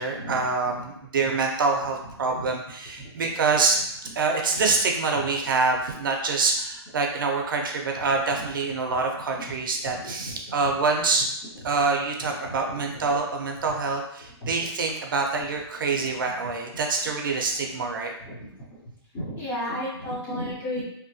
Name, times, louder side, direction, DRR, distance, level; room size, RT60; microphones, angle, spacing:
voice 1, 0.0-3.8 4.2-11.3 11.6-18.1, right 4 dB, 50° right, 2 dB, 0.5 m, -26 dB
voice 2, 19.1-20.8, left 1 dB, 10° left, -7 dB, 0.4 m, -31 dB
2.8 x 2.2 x 2.6 m, 0.76 s
hypercardioid pair, 170°, 14 cm